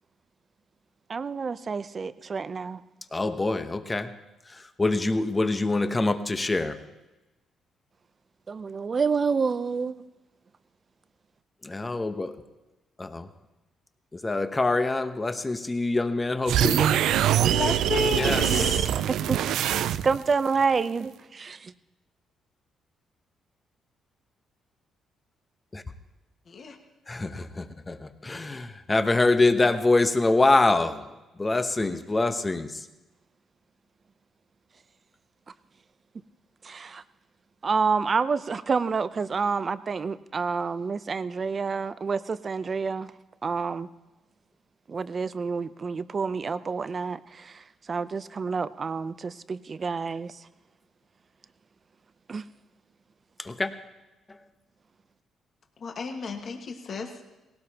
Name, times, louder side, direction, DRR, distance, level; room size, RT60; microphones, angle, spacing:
voice 1, 1.1-2.8 8.5-10.0 19.1-19.4 20.0-21.7 36.6-37.0 37.6-43.1 43.4-43.9 44.9-50.3 52.3-52.4, right 5 dB, 40° right, 0.6 m, -28 dB
voice 2, 3.1-4.1 4.5-6.8 11.6-12.4 13.0-13.3 14.1-17.0 18.1-18.7 25.7-25.8 27.1-31.0 31.4-32.8 53.4-53.7 54.3-54.4, left 2 dB, 20° left, 1.0 m, -25 dB
sound 1, 16.5-20.3, right 11 dB, 80° right, 0.4 m, -23 dB
voice 3, 17.4-18.8 26.5-26.8 55.8-57.2, left 4 dB, 50° left, 1.6 m, -32 dB
19.0 x 17.5 x 2.9 m
cardioid pair, 90°, 0 cm